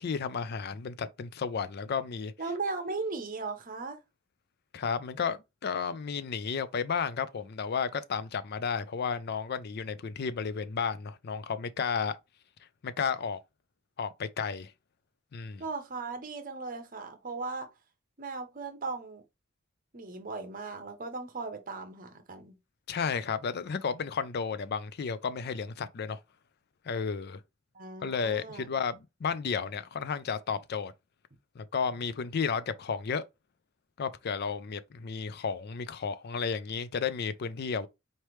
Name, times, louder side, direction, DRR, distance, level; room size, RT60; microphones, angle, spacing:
voice 1, 0.0-2.3 4.7-12.2 12.8-13.4 14.0-14.7 15.3-15.6 22.9-26.2 26.9-27.4 28.0-30.9 31.6-33.2 34.0-37.9, left 6 dB, 50° left, 0.4 m, -32 dB
voice 2, 2.4-4.0 15.6-17.7 18.2-19.2 19.9-22.6 27.7-28.7, right 3 dB, 45° right, 1.0 m, -37 dB
4.3 x 3.2 x 3.0 m
head